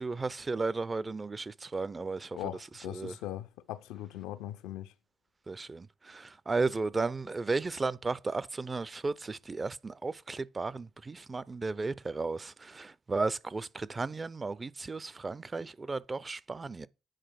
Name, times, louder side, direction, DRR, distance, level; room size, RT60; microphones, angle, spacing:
voice 1, 0.0-2.4 2.9-3.1 5.5-16.9, right 3 dB, 35° right, 0.6 m, -34 dB
voice 2, 2.3-4.9, left 13 dB, 80° left, 0.6 m, -40 dB
9.2 x 4.6 x 5.8 m
hypercardioid pair, 40°, 0 cm